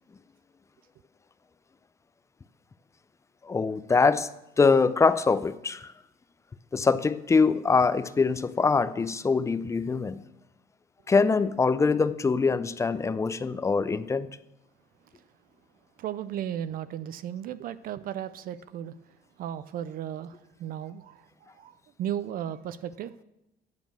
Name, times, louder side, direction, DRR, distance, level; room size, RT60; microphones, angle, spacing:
voice 1, 3.4-4.3 4.6-5.9 6.7-10.2 11.1-14.3, left 4 dB, 15° left, 0.4 m, -23 dB
voice 2, 16.0-18.9 19.4-21.3 21.5-23.1, right 10 dB, 60° right, 0.4 m, -35 dB
9.3 x 5.1 x 6.2 m
cardioid pair, 110°, 17 cm